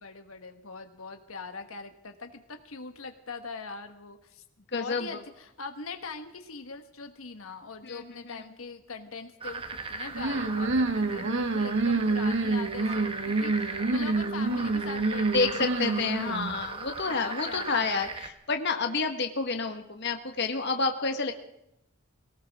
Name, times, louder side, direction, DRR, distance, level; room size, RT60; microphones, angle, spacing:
voice 1, 0.0-4.4 4.7-9.6 9.9-16.5 17.1-17.9, left 4 dB, 85° left, 6 dB, 1.4 m, -41 dB
voice 2, 4.7-5.1 7.8-8.3 15.3-21.3, left 4 dB, 55° left, 5 dB, 1.3 m, -29 dB
sound 1, 9.4-18.3, right 3 dB, 25° right, 1.1 m, -38 dB
sound 2, 10.1-16.6, right 3 dB, 60° right, 0.8 m, -28 dB
22.0 x 18.0 x 3.6 m, 0.82 s
head